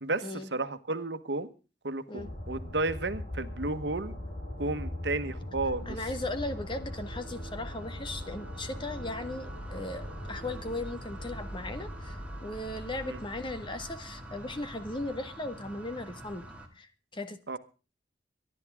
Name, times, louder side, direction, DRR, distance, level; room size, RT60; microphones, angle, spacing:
voice 1, 0.5-1.5 1.8-4.2 4.6-6.0 13.1-13.2 17.5-17.6, right 2 dB, 75° right, 1.3 m, -32 dB
sound 1, 2.2-15.2, left 1 dB, 50° left, 7.6 m, -41 dB
sound 2, 5.7-16.7, right 1 dB, 10° right, 2.6 m, -48 dB
voice 2, 5.8-16.5 16.7-17.6, left 2 dB, 30° left, 1.7 m, -37 dB
25.5 x 11.0 x 3.6 m
head